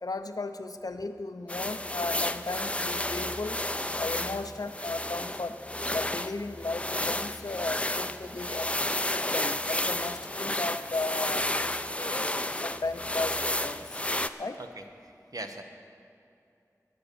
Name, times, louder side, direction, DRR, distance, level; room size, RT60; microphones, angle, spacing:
voice 1, 0.0-3.6 4.0-5.6 5.9-8.7 9.1-14.0 14.4-14.6, left 3 dB, 85° left, 9 dB, 0.6 m, -35 dB
sound 1, 1.5-14.3, left 1 dB, 20° left, 0.4 m, -32 dB
voice 2, 15.0-15.6, right 2 dB, 75° right, 5 dB, 1.0 m, -40 dB
17.5 x 6.9 x 6.8 m, 2.6 s
wide cardioid pair, 45°, 6 cm